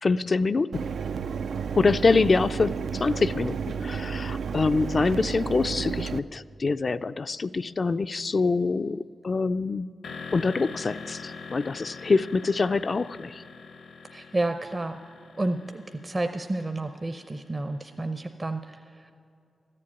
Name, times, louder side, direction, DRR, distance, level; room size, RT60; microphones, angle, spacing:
voice 1, 0.0-0.9 1.7-9.9 10.3-13.4, left 4 dB, 50° left, 11 dB, 0.3 m, -25 dB
Mechanisms, 0.7-6.2, right 6 dB, 80° right, 0.3 m, -32 dB
sound 1, 10.0-17.8, left 4 dB, 90° left, 0.9 m, -43 dB
voice 2, 14.1-19.1, right 2 dB, 30° right, 7 dB, 0.6 m, -31 dB
13.5 x 7.7 x 9.7 m, 2.5 s
cardioid pair, 55°, 0 cm